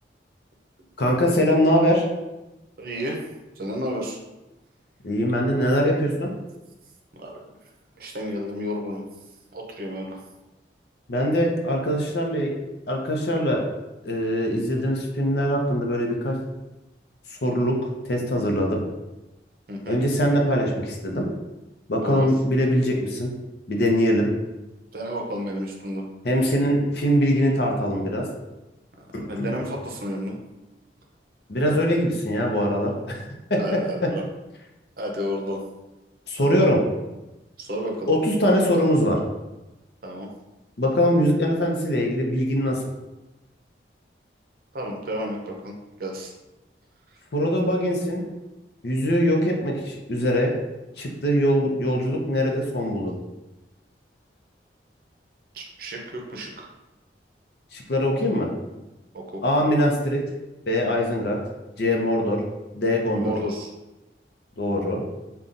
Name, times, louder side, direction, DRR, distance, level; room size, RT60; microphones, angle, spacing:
voice 1, 1.0-2.0 5.0-6.3 11.1-12.5 12.9-13.6 14.0-16.4 17.3-17.8 18.0-18.8 19.9-21.3 21.9-23.3 23.7-24.3 26.2-28.2 29.4-29.5 31.5-33.2 33.5-34.1 36.3-36.8 38.1-39.2 40.8-42.8 47.3-48.2 48.8-50.5 51.0-53.1 57.7-58.5 59.4-60.2 60.7-61.4 61.8-62.4 62.7-63.3 64.6-65.0, equal, 65° left, 0 dB, 0.6 m, -22 dB
voice 2, 2.8-3.2 3.6-4.2 7.2-7.4 7.9-9.0 9.5-10.2 19.7-20.0 22.0-22.3 24.9-26.0 29.2-30.4 33.6-34.2 35.0-35.6 36.4-36.7 37.6-38.1 40.0-40.3 44.7-45.7 46.0-46.3 55.5-56.7 59.1-59.4 63.1-63.7, equal, 55° right, 1 dB, 0.6 m, -31 dB
5.3 x 2.3 x 2.5 m, 1.0 s
head